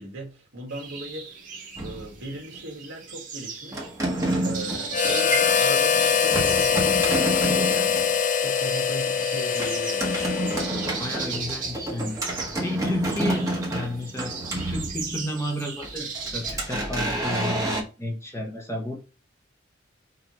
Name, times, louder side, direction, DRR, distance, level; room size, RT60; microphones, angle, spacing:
voice 1, 0.0-1.4 1.8-8.1 8.4-10.8 13.1-13.2, right 1 dB, 70° right, 1.9 m, -38 dB
sound 1, 0.7-16.5, right 5 dB, 45° right, 1.5 m, -38 dB
sound 2, 1.8-2.6 3.7-8.2 9.6-15.4 15.8-17.8, right 1 dB, 15° right, 1.4 m, -29 dB
Harmonica, 4.9-10.9, left 7 dB, 40° left, 0.4 m, -23 dB
voice 2, 11.0-12.2 12.6-14.3 14.6-19.0, left 1 dB, 15° left, 1.0 m, -32 dB
5.9 x 2.9 x 3.1 m
head